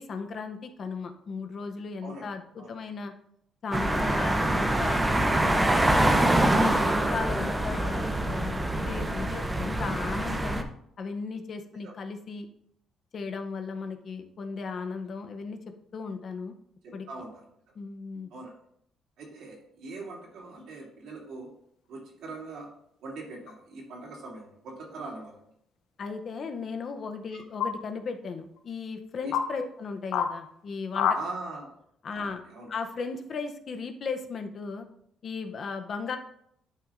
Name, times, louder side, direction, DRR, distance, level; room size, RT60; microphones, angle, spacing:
voice 1, 0.0-3.1 3.6-6.2 6.5-10.7 11.0-12.5 13.1-15.6 15.9-16.5 16.9-17.1 17.8-18.3 26.0-31.1 32.0-32.4 32.7-34.9 35.2-36.2, left 4 dB, 40° left, 6 dB, 0.6 m, -36 dB
sound 1, 3.7-10.6, right 1 dB, 10° right, 0.6 m, -25 dB
voice 2, 16.8-17.4 18.3-18.5 19.2-21.5 21.9-22.7 23.0-25.4 27.3-27.4 29.2-29.3 31.1-31.7 32.1-32.2 32.5-32.7, right 3 dB, 70° right, -2 dB, 2.7 m, -41 dB
sound 2, 23.5-23.6 25.0-25.5 27.6-27.7 28.6-28.7 29.3-29.5 30.1-30.3 30.9-31.2, left 8 dB, 80° left, 0.8 m, -27 dB
11.5 x 6.1 x 2.5 m, 0.71 s
cardioid pair, 160°, 0 cm